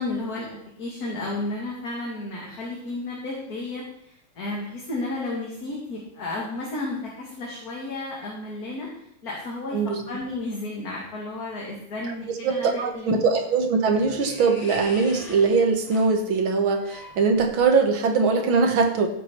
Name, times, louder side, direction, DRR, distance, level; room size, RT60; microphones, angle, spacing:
voice 1, 0.0-9.8 10.1-13.2, left 2 dB, 45° left, -3 dB, 2.6 m, -33 dB
voice 2, 12.4-19.1, right 4 dB, 65° right, 5 dB, 2.1 m, -21 dB
sound 1, 12.9-17.9, left 2 dB, 80° left, 3.3 m, -44 dB
15.0 x 7.6 x 4.4 m, 0.75 s
omnidirectional pair, 2.4 m